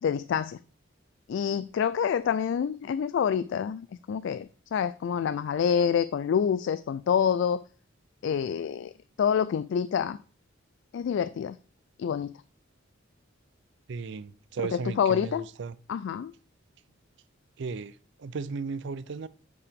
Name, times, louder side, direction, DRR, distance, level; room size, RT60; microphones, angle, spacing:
voice 1, 0.0-0.6 1.3-7.6 8.2-8.9 9.2-10.2 10.9-11.6 12.0-12.3 14.7-15.4 15.9-16.3, left 7 dB, 65° left, 0.3 m, -27 dB
voice 2, 13.9-15.8 17.6-19.3, right 5 dB, 65° right, 0.4 m, -35 dB
8.3 x 4.8 x 3.4 m
head